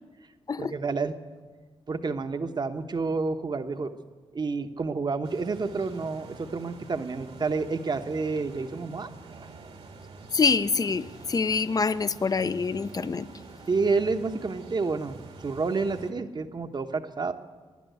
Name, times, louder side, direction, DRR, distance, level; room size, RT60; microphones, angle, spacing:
voice 1, 0.6-1.2 1.9-4.0 4.3-9.1 9.4-9.5 13.7-17.3, right 4 dB, 45° right, 1.1 m, -29 dB
sound 1, 5.2-16.1, right 3 dB, 70° right, 1.9 m, -47 dB
voice 2, 10.3-13.3, left 4 dB, 35° left, 0.6 m, -25 dB
16.0 x 11.0 x 8.1 m
cardioid pair, 65°, 11 cm